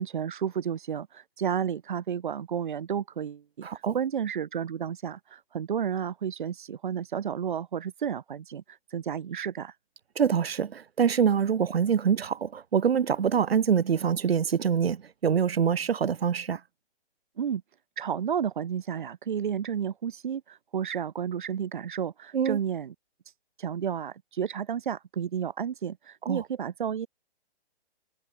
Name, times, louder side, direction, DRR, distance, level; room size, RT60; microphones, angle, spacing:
voice 1, 0.0-9.7 17.4-17.6 18.0-22.9 23.6-27.1, right 8 dB, 50° right, 4.4 m, -32 dB
voice 2, 3.6-3.9 10.2-16.6 22.3-22.6 26.3-26.4, right 7 dB, 70° right, 1.9 m, -25 dB
hypercardioid pair, 175°, 31 cm